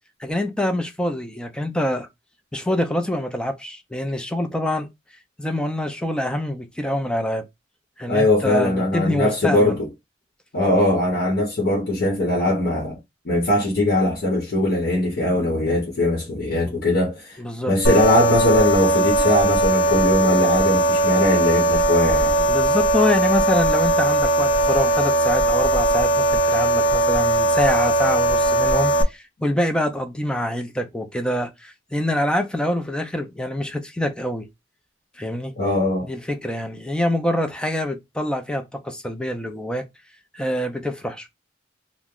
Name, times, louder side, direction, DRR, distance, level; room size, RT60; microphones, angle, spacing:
voice 1, 0.2-2.1 2.5-4.9 5.4-7.4 8.0-9.8 16.6-16.7 17.4-17.7 22.2-34.5 35.2-35.5 36.0-39.9 40.3-41.3, left 1 dB, 5° left, 0.4 m, -25 dB
voice 2, 8.1-9.8 10.5-13.0 13.2-17.4 17.7-22.4 35.6-36.1, left 1 dB, 55° left, 0.9 m, -20 dB
sound 1, 17.8-29.0, right 1 dB, 75° left, 0.5 m, -19 dB
2.8 x 2.1 x 3.6 m
head